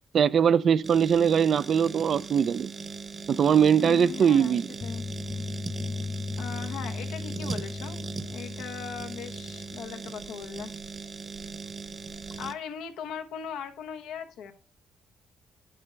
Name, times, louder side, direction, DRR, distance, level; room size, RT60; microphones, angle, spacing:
voice 1, 0.1-2.7 3.3-4.7, right 7 dB, 55° right, 0.4 m, -21 dB
sound 1, 0.8-12.5, right 4 dB, 40° right, 1.0 m, -39 dB
voice 2, 3.8-5.0 6.4-10.7 12.4-14.5, left 7 dB, 90° left, 1.1 m, -39 dB
sound 2, 4.8-9.8, left 4 dB, 30° left, 0.4 m, -37 dB
8.9 x 7.8 x 3.4 m
cardioid pair, 90°, 0 cm